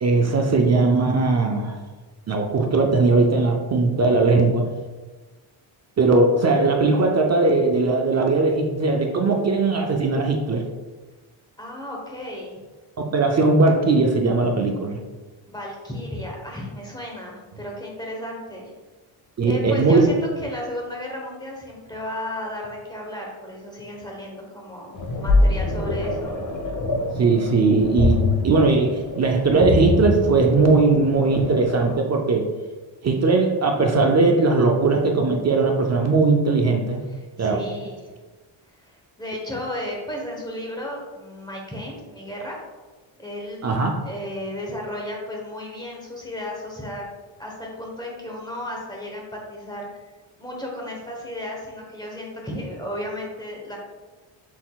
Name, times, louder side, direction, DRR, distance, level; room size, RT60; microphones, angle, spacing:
voice 1, 0.0-1.8 2.3-4.7 6.0-10.6 13.0-15.0 19.4-20.1 27.2-32.5 33.0-37.0 37.4-37.6 43.6-44.0, right 3 dB, 35° right, 2 dB, 0.4 m, -19 dB
voice 2, 11.6-12.6 15.5-18.7 19.4-26.4 37.1-38.0 38.8-42.6 43.2-43.6 44.0-47.0 47.4-50.0 50.4-53.8, left 1 dB, 10° left, -1 dB, 1.0 m, -34 dB
sound 1, 24.9-31.9, left 2 dB, 40° left, 0.7 m, -24 dB
6.2 x 3.7 x 2.3 m, 1.3 s
wide cardioid pair, 140°, 50 cm